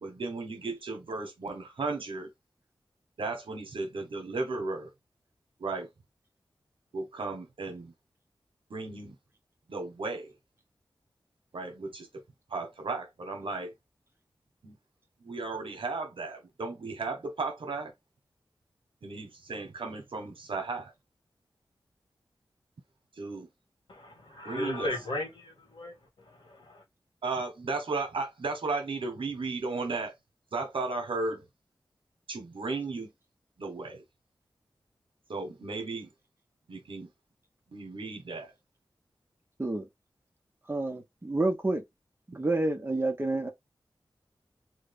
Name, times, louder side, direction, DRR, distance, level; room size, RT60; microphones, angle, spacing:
voice 1, 0.0-2.3 3.2-4.9 5.6-5.9 6.9-7.9 8.7-9.2 9.7-10.3 11.5-12.1 12.5-13.7 14.6-14.7 15.2-17.9 19.0-20.9 23.2-23.5 24.4-24.9 27.2-30.1 30.5-31.4 32.3-33.1 33.6-34.0 35.3-36.1 36.7-37.1 37.7-38.5, right 3 dB, 85° right, 1.1 m, -35 dB
voice 2, 23.9-26.8, left 1 dB, 75° left, 1.7 m, -36 dB
voice 3, 40.7-41.8 42.3-43.5, right 2 dB, 25° right, 0.9 m, -29 dB
3.2 x 2.3 x 3.4 m
wide cardioid pair, 60°, 9 cm